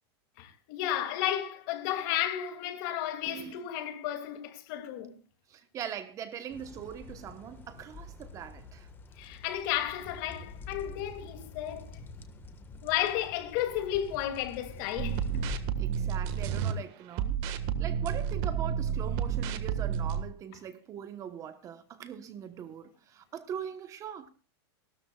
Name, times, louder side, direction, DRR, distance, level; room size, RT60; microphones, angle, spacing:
voice 1, 0.4-5.2 9.2-12.0 12.8-15.5, left 11 dB, 50° left, 2.6 m, -33 dB
voice 2, 3.3-3.6 5.5-8.9 15.8-17.5 17.8-24.3, right 9 dB, 25° right, 1.1 m, -41 dB
sound 1, 6.5-15.6, left 4 dB, 15° left, 1.5 m, -47 dB
sound 2, 15.0-16.7 17.1-20.2, right 8 dB, 40° right, 1.6 m, -30 dB
28.0 x 13.0 x 2.4 m
supercardioid pair, 150°, 13 cm